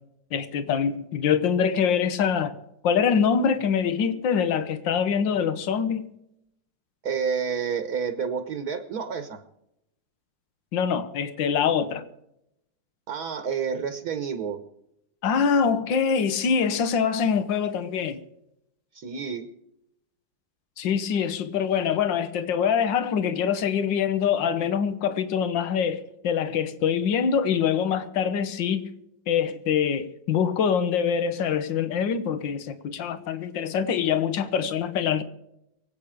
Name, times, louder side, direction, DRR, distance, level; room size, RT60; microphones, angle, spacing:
voice 1, 0.3-2.6 2.8-6.1 10.7-12.1 15.2-18.2 20.8-28.8 29.3-35.2, left 7 dB, 75° left, 1.8 m, -24 dB
voice 2, 7.0-9.4 13.1-14.6 18.9-19.5, right 6 dB, 55° right, 1.6 m, -29 dB
24.0 x 8.9 x 5.1 m
omnidirectional pair, 2.1 m